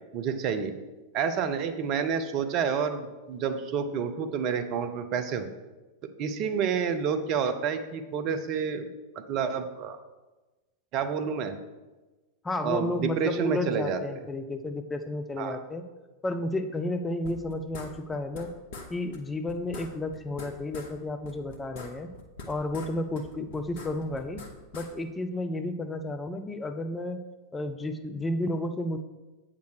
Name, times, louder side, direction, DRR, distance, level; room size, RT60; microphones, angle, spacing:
voice 1, 0.1-0.7 1.1-5.5 6.2-8.9 9.3-10.0 10.9-11.5 12.6-14.0 15.4-15.6, right 6 dB, 40° right, 8 dB, 0.7 m, -29 dB
voice 2, 12.4-15.8 16.2-18.5 18.9-22.1 22.5-24.4 24.7-27.2 27.5-29.0, left 2 dB, 15° left, 8 dB, 0.6 m, -32 dB
sound 1, 17.2-18.5 18.7-18.9 19.1-19.2 19.5-20.9 21.2-22.9 23.1-24.9, left 3 dB, 50° left, 1.2 m, -43 dB
8.3 x 6.1 x 4.7 m, 1.2 s
figure-of-eight pair, 90°, 0 cm